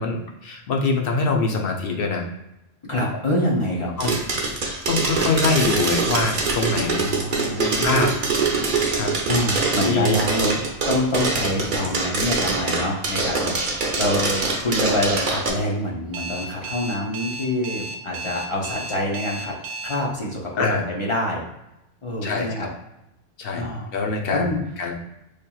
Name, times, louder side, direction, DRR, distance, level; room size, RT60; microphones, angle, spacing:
voice 1, 0.0-2.3 4.0-4.2 4.5-7.0 7.3-8.1 8.9-9.1 9.8-10.5 20.6-20.8 22.2-22.7 23.4-24.9, left 3 dB, 65° left, 2 dB, 0.8 m, -24 dB
voice 2, 2.9-3.9 6.8-8.0 9.3-10.5 10.9-19.5 19.8-21.4 22.0-22.7 23.5-23.9 24.3-24.6, left 1 dB, 35° left, -3 dB, 0.6 m, -26 dB
sound 1, 4.0-15.5, right 3 dB, 50° right, 0.8 m, -24 dB
Alarm, 16.1-20.0, right 3 dB, 85° right, 0.9 m, -33 dB
4.8 x 2.9 x 2.3 m, 0.89 s
omnidirectional pair, 1.1 m